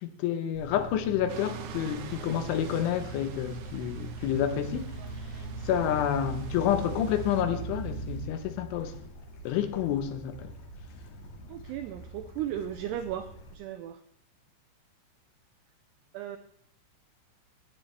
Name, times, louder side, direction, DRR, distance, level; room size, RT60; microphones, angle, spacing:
voice 1, 0.0-4.9 5.7-8.9 9.4-10.5, left 10 dB, 80° left, 9 dB, 3.4 m, -29 dB
sound 1, 0.5-8.3, right 3 dB, 35° left, 2.7 m, -39 dB
sound 2, 1.3-7.4, right 8 dB, 70° right, 2.7 m, -47 dB
Bird / Stream, 4.6-13.5, right 1 dB, 65° left, 2.0 m, -47 dB
voice 2, 11.5-14.0 16.1-16.4, right 10 dB, 85° right, 9 dB, 2.3 m, -36 dB
15.0 x 9.5 x 3.3 m, 0.71 s
omnidirectional pair, 5.4 m